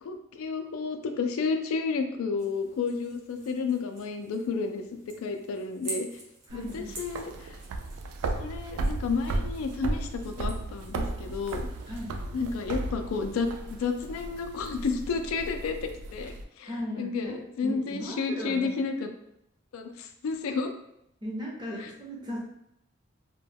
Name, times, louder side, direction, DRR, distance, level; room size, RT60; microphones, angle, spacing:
voice 1, 0.0-6.1 6.5-7.6 8.3-11.7 12.3-19.1 19.7-20.7 21.8-21.9, left 4 dB, 80° left, 7 dB, 0.3 m, -31 dB
sound 1, 2.4-12.5, right 1 dB, 55° right, 0.9 m, -47 dB
voice 2, 6.5-6.9 11.9-12.1 16.6-18.8 21.2-22.4, equal, 20° right, -4 dB, 0.6 m, -37 dB
sound 2, 6.5-16.4, right 2 dB, 90° right, 0.3 m, -35 dB
2.2 x 2.1 x 3.3 m, 0.78 s
head